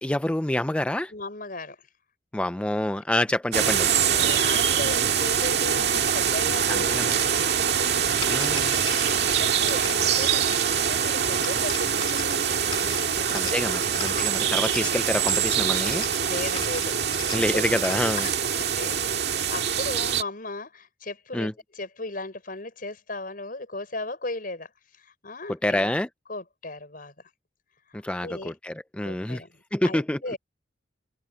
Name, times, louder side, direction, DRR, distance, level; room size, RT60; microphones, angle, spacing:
voice 1, 0.0-1.1 2.3-3.9 6.7-7.2 8.3-8.8 13.3-16.1 17.3-18.3 21.3-21.5 25.6-26.1 27.9-29.4 29.7-30.2, left 1 dB, 5° left, 0.4 m, -27 dB
voice 2, 1.1-1.9 4.0-8.2 8.6-14.4 14.8-15.1 16.2-17.6 18.1-25.9 26.3-27.1 27.9-28.5 29.0-30.4, left 2 dB, 50° left, 6.4 m, -37 dB
sound 1, 3.5-20.2, right 8 dB, 60° right, 2.1 m, -24 dB
sound 2, 8.0-18.3, left 6 dB, 30° left, 2.5 m, -40 dB
head